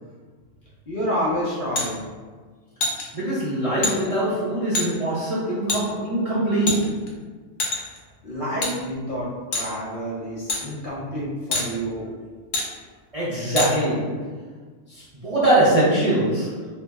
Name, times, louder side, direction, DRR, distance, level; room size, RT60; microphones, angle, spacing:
voice 1, 0.9-2.0 8.2-12.1, equal, 50° left, -6 dB, 0.7 m, -28 dB
sound 1, 1.7-1.9 2.8-3.0 3.8-3.9 4.7-4.9 5.7-5.8 6.7-7.1 7.6-8.0 8.6-8.7 9.5-9.7 10.5-10.6 11.5-11.7 12.5-12.7 13.6-13.7, left 2 dB, 80° left, 1.0 m, -24 dB
voice 2, 3.1-7.1 13.1-14.3 14.9-16.7, right 1 dB, 40° right, -10 dB, 0.5 m, -22 dB
2.6 x 2.0 x 3.4 m, 1.5 s
omnidirectional pair, 1.3 m